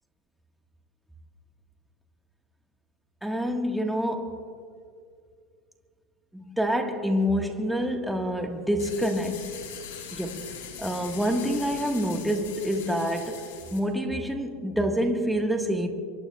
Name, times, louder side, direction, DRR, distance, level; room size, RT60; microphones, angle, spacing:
voice 1, 3.2-4.4 6.3-9.6 10.1-13.4 13.7-15.9, equal, 5° right, 2 dB, 1.4 m, -27 dB
sound 1, 8.8-13.8, left 7 dB, 85° left, 3.7 m, -41 dB
25.5 x 23.5 x 2.3 m, 2.3 s
supercardioid pair, 140°, 0 cm